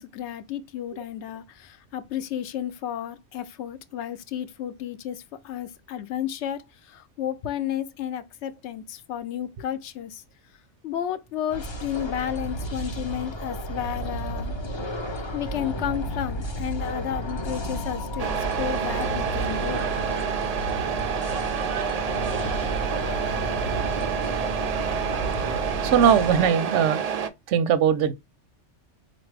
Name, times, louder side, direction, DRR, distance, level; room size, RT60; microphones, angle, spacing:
voice 1, 0.0-10.2 10.8-14.5 15.3-19.9, left 10 dB, 75° left, 0.9 m, -32 dB
sound 1, 11.5-26.5, equal, 30° left, 0.5 m, -32 dB
Truck, 18.2-27.3, right 7 dB, 70° right, 0.3 m, -28 dB
voice 2, 25.8-27.0 27.5-28.1, right 8 dB, 85° right, 0.9 m, -20 dB
4.1 x 2.6 x 3.1 m
omnidirectional pair, 1.2 m